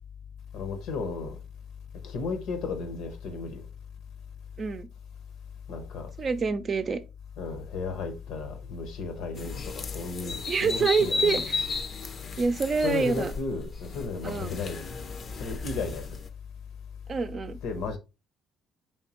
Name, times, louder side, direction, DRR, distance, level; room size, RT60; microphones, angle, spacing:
voice 1, 0.5-1.4 2.0-3.6 5.7-6.1 7.4-11.5 12.8-14.8 15.4-16.1 17.6-18.0, left 4 dB, 75° left, 0.8 m, -34 dB
voice 2, 6.2-7.0 10.5-11.6 12.4-13.3 14.2-14.6 17.1-17.6, right 5 dB, 45° right, 0.5 m, -27 dB
sound 1, 9.4-16.3, left 4 dB, 50° left, 0.6 m, -34 dB
4.4 x 3.3 x 2.9 m
supercardioid pair, 70°, 0 cm